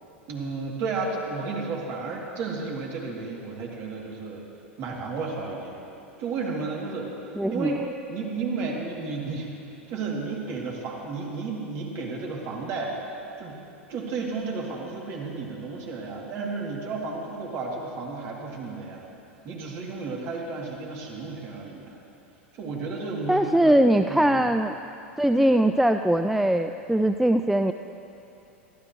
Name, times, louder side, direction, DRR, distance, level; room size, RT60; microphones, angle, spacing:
voice 1, 0.3-4.4 4.8-5.8 6.2-7.1 7.5-7.8 8.1-9.5 9.9-13.0 13.4-13.6 13.9-19.1 19.4-21.9 22.5-23.8 24.1-24.5, right 4 dB, 40° right, -2 dB, 2.9 m, -32 dB
voice 2, 7.4-7.8 23.3-24.7 25.2-27.7, right 1 dB, 5° right, 7 dB, 0.3 m, -21 dB
23.5 x 14.5 x 3.2 m, 2.8 s
figure-of-eight pair, 90°, 7 cm